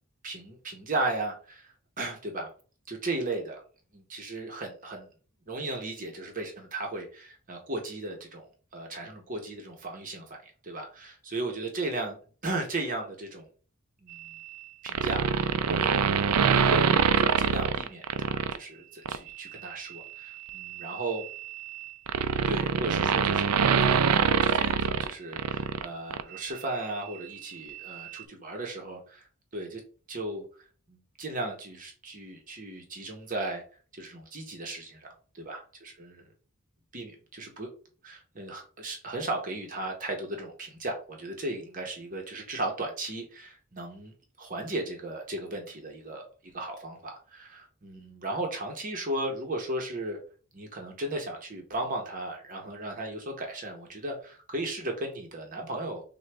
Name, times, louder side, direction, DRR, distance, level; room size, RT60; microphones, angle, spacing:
voice 1, 0.2-2.5 2.9-3.6 3.9-5.1 5.5-12.2 12.4-13.5 14.0-14.3 14.8-16.9 17.2-21.3 22.5-29.3 29.5-29.8 30.1-33.6 33.9-36.2 36.9-37.7 38.0-50.2 50.5-56.0, right 2 dB, 35° right, 2 dB, 0.9 m, -36 dB
sound 1, 14.9-18.6 19.1-19.3 20.5-25.9 26.1-26.2, right 6 dB, 85° right, 0.4 m, -25 dB
6.3 x 2.2 x 3.3 m, 0.40 s
head